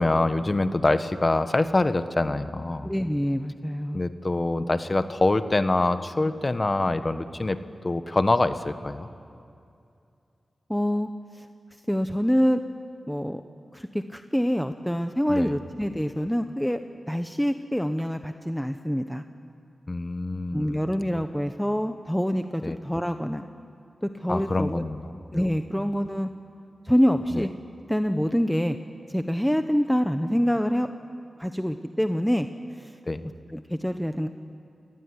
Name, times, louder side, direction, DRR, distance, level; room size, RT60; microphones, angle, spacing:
voice 1, 0.0-2.9 3.9-9.1 15.3-15.5 19.9-20.8 22.6-22.8 24.3-25.5 27.3-27.5 33.1-33.2, left 2 dB, 40° left, 10 dB, 1.4 m, -25 dB
voice 2, 2.8-4.0 10.7-11.5 11.9-12.6 13.1-13.4 13.7-16.8 17.1-19.2 20.5-23.5 24.0-24.8 25.3-26.3 26.8-27.5 27.9-28.8 29.1-30.9 31.4-32.5 32.8-33.0 33.5-34.3, equal, 5° left, 7 dB, 1.2 m, -26 dB
28.0 x 18.5 x 9.8 m, 2.5 s
cardioid pair, 40°, 0 cm